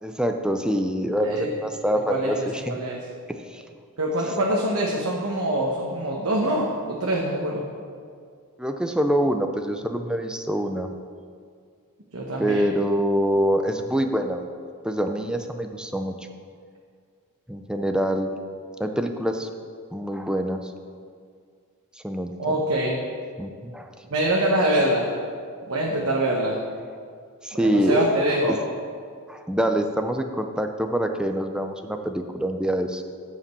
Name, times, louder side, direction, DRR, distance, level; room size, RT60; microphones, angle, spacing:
voice 1, 0.0-2.8 3.5-3.6 8.6-10.9 12.4-14.4 14.8-16.1 17.5-18.3 18.8-19.5 19.9-20.7 22.0-22.6 23.4-23.9 27.4-28.0 28.5-28.6 29.3-33.0, right 1 dB, 5° right, 6 dB, 0.5 m, -25 dB
voice 2, 2.1-3.0 4.0-7.6 12.1-12.7 22.4-23.0 24.1-25.1 25.7-26.5 27.6-28.6, right 1 dB, 70° right, -2 dB, 1.0 m, -24 dB
8.1 x 5.1 x 6.8 m, 2.1 s
head